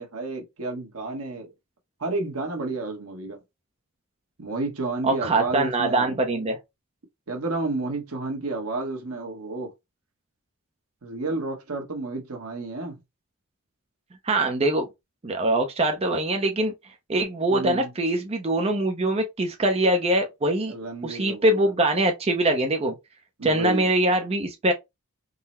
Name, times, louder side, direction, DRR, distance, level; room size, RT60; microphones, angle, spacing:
voice 1, 0.0-1.5 2.0-3.4 4.4-6.2 7.3-9.7 11.0-13.0 17.5-17.9 20.7-21.7 23.4-23.9, right 3 dB, 70° right, 1.1 m, -31 dB
voice 2, 5.0-6.6 14.2-14.9 15.2-16.7 17.1-20.7 21.0-22.9 23.4-24.7, right 1 dB, 30° right, 0.5 m, -23 dB
3.8 x 2.0 x 4.1 m
head